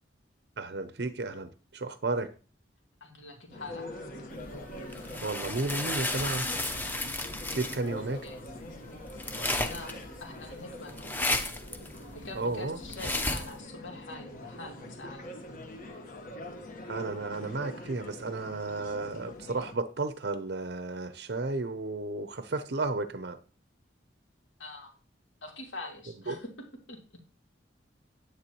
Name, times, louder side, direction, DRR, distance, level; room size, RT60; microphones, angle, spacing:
voice 1, 0.6-2.3 5.2-6.5 7.5-8.3 12.3-12.8 16.8-23.4 26.3-26.4, right 3 dB, 60° right, 0.6 m, -33 dB
voice 2, 3.0-3.9 8.2-8.4 9.4-9.9 10.2-11.1 12.1-15.6 24.6-24.9 25.4-26.5 26.9-27.0, left 2 dB, 85° left, 2.5 m, -44 dB
sound 1, 3.5-19.7, left 1 dB, 45° left, 1.2 m, -44 dB
sound 2, 4.4-13.6, left 1 dB, 10° left, 0.7 m, -34 dB
9.8 x 8.9 x 3.0 m
head